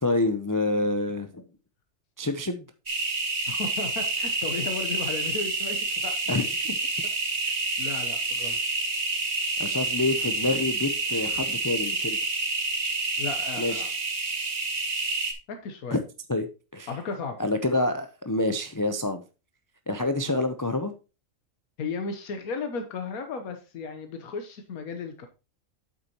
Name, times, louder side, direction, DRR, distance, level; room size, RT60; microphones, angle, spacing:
voice 1, 0.0-1.4 2.2-2.7 6.3-6.8 8.4-8.7 9.6-12.2 13.6-13.9 15.9-16.0 16.3-16.5 16.7-16.9 17.4-19.2 19.9-20.9, left 2 dB, 25° left, 7 dB, 0.4 m, -27 dB
sound 1, 2.9-15.3, right 3 dB, 35° right, 1.4 m, -28 dB
voice 2, 3.5-5.8 6.0-6.3 7.8-8.6 13.2-13.9 15.5-16.0 16.9-17.4 21.8-25.3, left 5 dB, 85° left, 6 dB, 1.5 m, -35 dB
8.3 x 8.1 x 2.9 m, 0.31 s
omnidirectional pair, 1.5 m